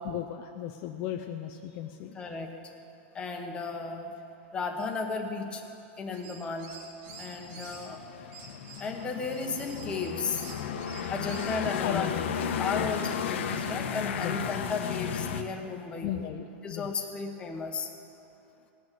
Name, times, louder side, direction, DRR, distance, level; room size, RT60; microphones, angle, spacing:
voice 1, 0.0-2.2 11.6-13.0 14.2-14.5 16.0-17.0, left 10 dB, 40° left, 4 dB, 0.6 m, -36 dB
voice 2, 2.1-2.5 3.1-4.1 4.5-5.6 6.0-6.7 7.2-8.0 8.8-10.5 11.1-12.1 12.6-16.1 16.6-17.9, left 4 dB, 15° left, 2 dB, 1.3 m, -34 dB
sound 1, 6.1-7.9 8.3-11.6, right 4 dB, 55° right, 2.2 m, -48 dB
sound 2, 7.1-15.4, left 7 dB, 75° left, 1.2 m, -34 dB
19.0 x 6.4 x 9.2 m, 2.7 s
supercardioid pair, 155°, 7 cm